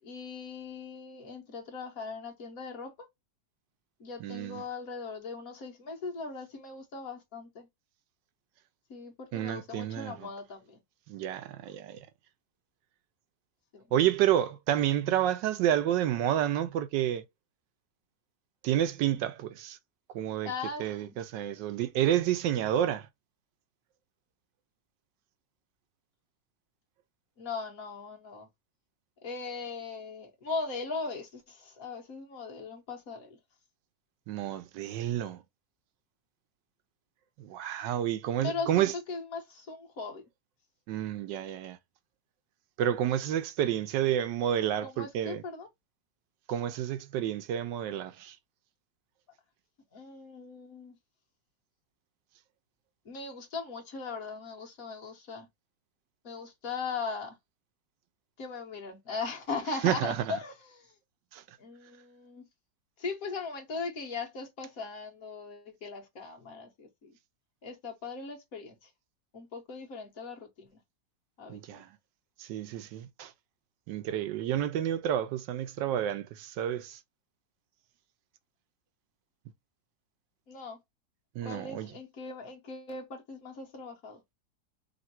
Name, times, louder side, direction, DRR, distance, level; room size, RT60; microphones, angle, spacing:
voice 1, 0.0-3.1 4.0-7.7 8.9-10.8 13.7-13.8 20.4-21.2 27.4-28.5 29.2-33.4 38.4-40.2 44.8-45.7 49.9-51.0 53.0-55.5 56.2-57.4 58.4-60.9 61.6-62.5 63.0-67.1 67.6-68.9 69.3-70.8 71.4-71.8 80.5-80.8 81.4-84.2, left 4 dB, 55° left, 1.4 m, -39 dB
voice 2, 4.2-4.6 9.3-10.3 11.1-12.1 13.9-17.2 18.6-19.8 20.1-20.5 20.8-23.1 34.3-35.4 37.4-38.9 40.9-41.8 42.8-45.4 46.5-48.4 59.8-60.4 61.3-61.4 71.5-71.9 72.4-73.3 73.9-77.0 81.4-81.9, right 11 dB, 85° right, 1.3 m, -30 dB
3.5 x 2.6 x 4.2 m
omnidirectional pair, 1.9 m